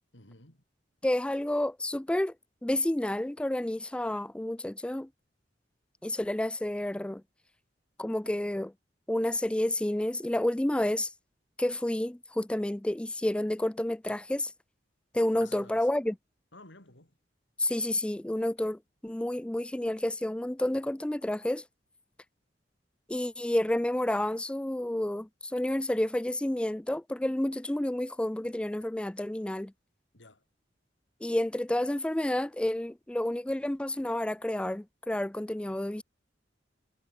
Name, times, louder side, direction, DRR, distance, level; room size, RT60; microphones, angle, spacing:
voice 1, 0.1-0.6 15.4-15.9 16.5-17.1 30.1-30.4, left 2 dB, 90° left, 6.8 m, -52 dB
voice 2, 1.0-2.3 2.6-5.1 6.0-7.2 8.0-8.7 9.1-11.1 11.6-14.5 15.1-16.2 17.6-21.6 23.1-29.7 31.2-36.0, left 1 dB, 5° left, 0.3 m, -30 dB
head